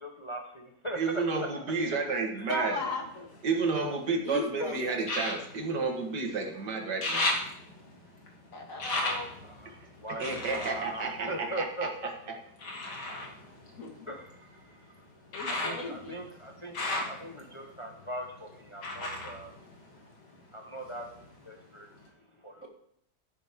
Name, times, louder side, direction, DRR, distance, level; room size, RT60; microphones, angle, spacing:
voice 1, 0.0-1.0 2.4-2.6 4.6-4.7 7.7-7.8 8.3-8.7 9.4-12.1 13.7-15.1 15.5-19.6 20.0-21.1 21.4-22.0 22.4-22.7, right 1 dB, 20° left, 2 dB, 1.1 m, -41 dB
voice 2, 0.9-2.8 3.4-7.3 9.8-12.4, right 4 dB, 80° right, 3 dB, 2.2 m, -31 dB
voice 3, 2.5-3.3 4.2-4.8 8.5-9.4 13.8-14.1 15.3-16.2 16.9-17.1, left 2 dB, 50° left, 1 dB, 2.4 m, -36 dB
sound 1, 2.8-4.2 5.0-6.5 6.8-12.0 12.6-20.4 20.8-21.6 22.1-22.2, left 2 dB, 85° left, 2.5 m, -36 dB
12.5 x 10.5 x 3.6 m, 0.71 s
omnidirectional pair, 1.8 m